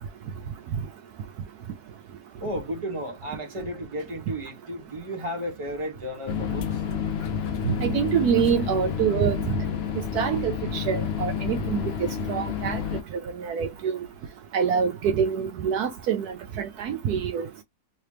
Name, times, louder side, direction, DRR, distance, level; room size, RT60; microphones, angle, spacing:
voice 1, 2.4-6.8, equal, 20° right, 1.2 m, -33 dB
sound 1, 6.3-13.0, left 7 dB, 70° left, 0.6 m, -29 dB
voice 2, 7.6-9.4 10.1-11.8 12.3-12.8 13.4-14.0 14.5-17.5, right 7 dB, 75° right, 1.1 m, -25 dB
3.2 x 2.8 x 3.2 m
omnidirectional pair, 1.8 m